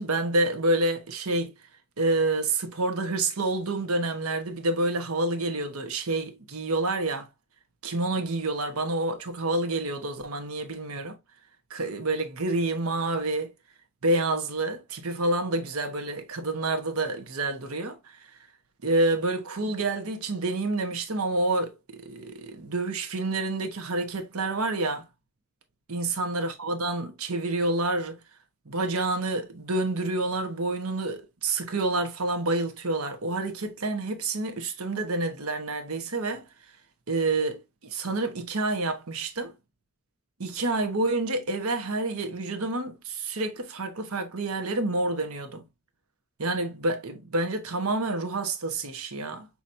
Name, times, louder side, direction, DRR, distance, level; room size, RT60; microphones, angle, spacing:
voice 1, 0.0-1.5 2.0-7.3 7.8-11.2 11.7-13.5 14.0-18.3 18.8-25.0 25.9-28.2 28.7-36.5 37.1-37.5 37.8-39.5 40.4-45.7 46.4-49.5, right 2 dB, 85° right, 1.1 m, -28 dB
6.0 x 2.9 x 2.6 m
head